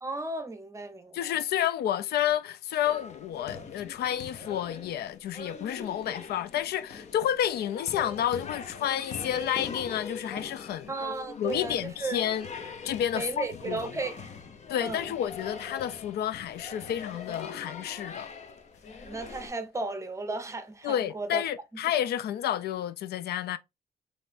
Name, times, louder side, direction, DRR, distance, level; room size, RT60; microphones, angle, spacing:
voice 1, 0.0-1.3 10.9-12.2 13.1-14.3 14.8-15.1 19.0-21.4, right 3 dB, 20° right, 0.7 m, -35 dB
voice 2, 1.1-10.9 11.4-12.5 12.8-13.9 14.7-18.3 20.8-23.6, left 10 dB, 85° left, 0.4 m, -30 dB
sound 1, 2.8-19.5, left 5 dB, 45° left, 0.8 m, -42 dB
5.4 x 3.2 x 2.5 m
wide cardioid pair, 155°, 16 cm